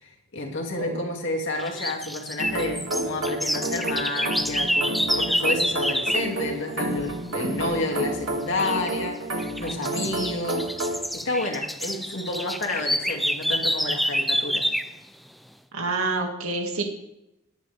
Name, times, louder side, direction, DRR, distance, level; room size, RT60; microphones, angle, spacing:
voice 1, 0.0-10.7 11.1-14.7, left 2 dB, 60° left, 1 dB, 2.6 m, -30 dB
sound 1, 1.6-6.3 8.6-8.9 9.4-15.0, equal, ahead, 0.4 m, -27 dB
sound 2, 2.4-11.1, right 1 dB, 70° right, 2.4 m, -30 dB
voice 2, 15.7-16.9, right 3 dB, 90° right, 2 dB, 2.3 m, -27 dB
20.0 x 10.0 x 3.5 m, 0.86 s
head